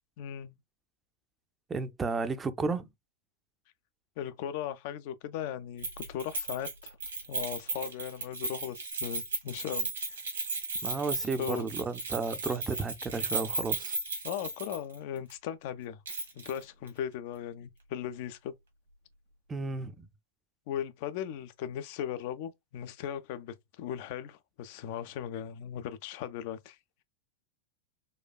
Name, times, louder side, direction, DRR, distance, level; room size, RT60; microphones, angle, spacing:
voice 1, 0.2-0.5 4.2-7.0 7.3-10.2 11.4-11.7 14.2-16.0 16.4-18.5 20.7-26.8, left 9 dB, 50° left, 0.3 m, -38 dB
voice 2, 1.7-2.9 10.8-14.0 19.5-20.1, right 4 dB, 15° right, 0.4 m, -33 dB
Keys jangling, 5.8-15.0 15.3-15.4 16.1-16.6 16.9-17.0, right 3 dB, 70° right, 1.2 m, -35 dB
4.2 x 2.2 x 2.2 m
figure-of-eight pair, 90°, 0 cm